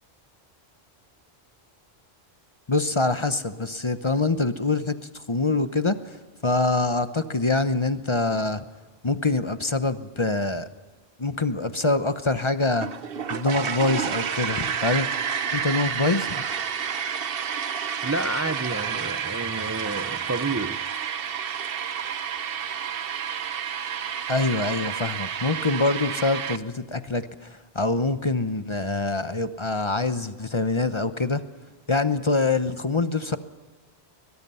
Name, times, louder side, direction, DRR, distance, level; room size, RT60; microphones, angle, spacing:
voice 1, 2.7-6.2 6.4-8.6 9.0-10.7 11.2-12.9 13.3-15.1 15.5-16.4 24.3-31.4 31.9-33.4, left 3 dB, 30° left, 11 dB, 0.8 m, -25 dB
sound 1, 12.8-26.6, right 7 dB, 60° right, 1.0 m, -30 dB
voice 2, 18.0-20.8, right 2 dB, 20° right, 10 dB, 0.4 m, -30 dB
22.0 x 21.0 x 5.6 m, 1.4 s
omnidirectional pair, 1.1 m